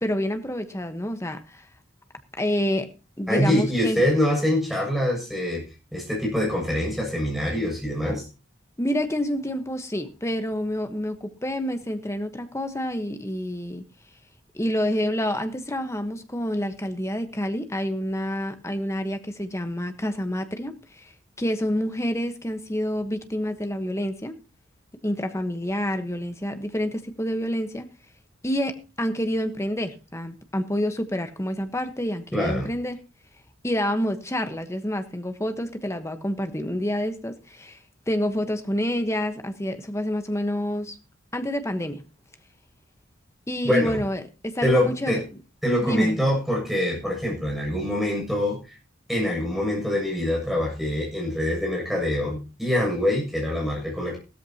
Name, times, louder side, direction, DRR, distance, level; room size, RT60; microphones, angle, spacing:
voice 1, 0.0-1.6 2.4-2.9 3.2-4.0 8.8-13.8 14.5-24.4 25.0-27.9 28.4-33.0 33.6-37.8 38.1-41.0 41.3-42.0 43.5-45.2 45.8-46.2, equal, 15° left, 8 dB, 1.2 m, -28 dB
voice 2, 3.3-5.6 5.9-8.3 32.3-32.7 43.6-44.0 44.6-45.2 45.6-48.6 49.1-54.2, left 1 dB, ahead, -2 dB, 7.2 m, -24 dB
16.0 x 13.5 x 2.9 m, 0.31 s
head